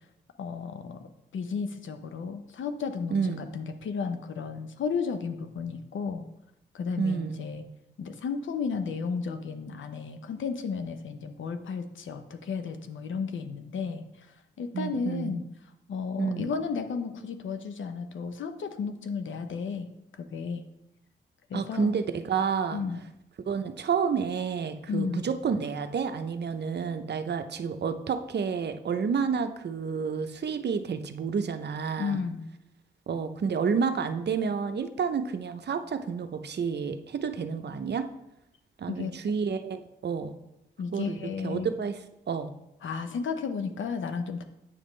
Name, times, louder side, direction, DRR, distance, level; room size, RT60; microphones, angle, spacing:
voice 1, 0.4-6.3 6.7-7.6 8.0-14.1 14.6-15.4 15.9-19.9 20.2-20.6 21.5-21.9 22.7-23.0 24.9-25.3 32.0-32.5 38.9-39.1 40.8-41.7 42.8-44.4, left 5 dB, 75° left, 8 dB, 0.7 m, -33 dB
voice 2, 3.1-3.4 7.0-7.4 14.7-15.4 16.2-16.5 21.5-22.8 23.5-32.2 33.1-38.1 38.8-40.4 40.9-42.0 42.3-42.5, right 6 dB, 60° right, 9 dB, 0.6 m, -30 dB
8.5 x 5.1 x 3.2 m, 0.85 s
cardioid pair, 50°, 20 cm